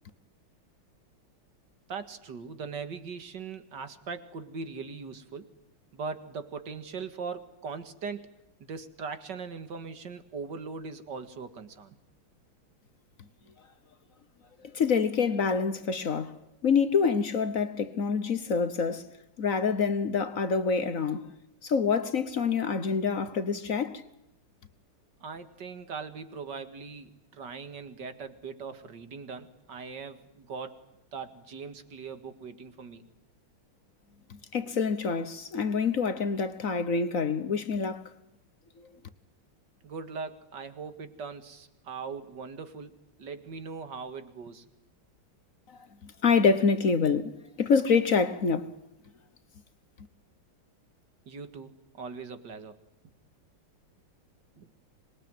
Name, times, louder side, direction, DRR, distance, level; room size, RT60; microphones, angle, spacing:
voice 1, 1.9-5.5 5.9-8.3 8.6-12.0 25.2-30.8 31.1-33.0 39.8-44.7 51.3-52.8 54.6-54.7, right 5 dB, 55° right, 2.4 m, -40 dB
voice 2, 14.7-16.4 16.6-19.1 19.4-21.3 21.6-24.0 34.5-38.0 46.0-48.7, left 5 dB, 45° left, 1.2 m, -26 dB
26.0 x 21.5 x 9.3 m
omnidirectional pair, 2.4 m